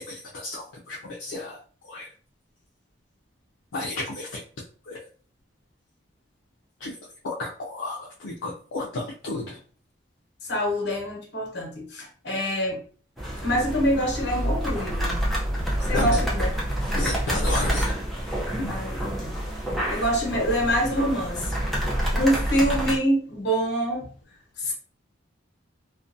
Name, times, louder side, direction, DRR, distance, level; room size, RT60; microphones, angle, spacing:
voice 1, 0.0-2.1 3.7-4.4 4.8-5.0 6.8-7.0 7.2-9.6 15.9-16.2 16.9-17.9 18.6-18.8, left 2 dB, 85° left, -3 dB, 0.4 m, -32 dB
voice 2, 10.5-12.8 13.4-15.2 15.8-16.5 18.7-19.4 19.9-21.5 22.1-24.1 24.6-24.7, equal, 65° left, 0 dB, 0.9 m, -25 dB
sound 1, 13.2-23.0, equal, ahead, 0.5 m, -27 dB
2.5 x 2.1 x 2.5 m, 0.41 s
head